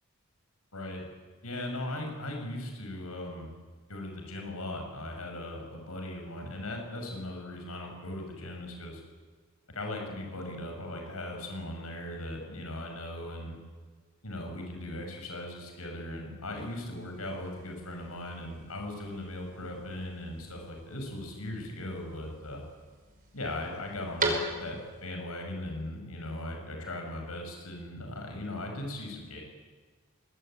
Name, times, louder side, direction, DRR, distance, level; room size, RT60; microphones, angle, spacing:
voice 1, 0.7-1.0 1.4-3.5 3.9-9.0 9.7-13.6 14.2-22.6 23.3-29.4, left 1 dB, 80° left, 3 dB, 6.1 m, -38 dB
sound 1, 16.5-25.0, right 2 dB, 40° right, 5.5 m, -40 dB
24.0 x 21.0 x 8.9 m, 1.4 s
head